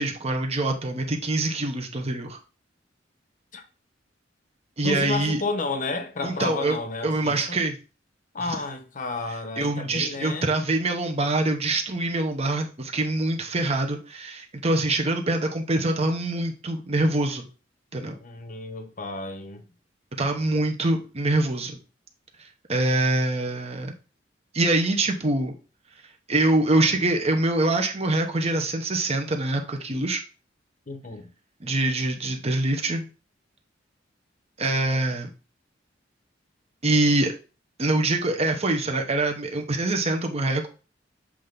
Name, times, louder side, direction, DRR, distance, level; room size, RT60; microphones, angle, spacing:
voice 1, 0.0-2.4 4.8-5.4 6.2-6.8 7.0-7.8 9.6-17.5 17.9-18.1 20.2-21.8 22.7-23.9 24.5-25.5 26.3-30.2 31.6-33.1 34.6-35.3 36.8-37.3 37.8-40.7, right 2 dB, 35° right, 0.9 m, -24 dB
voice 2, 4.8-7.6 8.3-10.5 18.2-19.7 30.9-31.3, left 3 dB, 45° left, 0.9 m, -31 dB
7.3 x 3.3 x 3.9 m
head